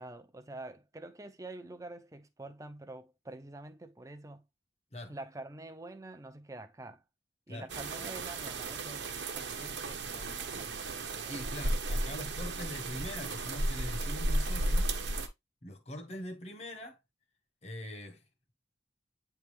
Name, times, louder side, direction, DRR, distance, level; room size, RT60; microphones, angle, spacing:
voice 1, 0.0-4.4 5.1-7.0 7.5-11.5 11.9-12.0, right 2 dB, 20° right, 0.6 m, -47 dB
sound 1, 7.7-15.3, right 1 dB, 90° right, 1.0 m, -34 dB
voice 2, 11.3-14.9 15.6-17.0 17.6-18.2, left 1 dB, 40° left, 1.1 m, -42 dB
9.0 x 3.4 x 3.2 m
head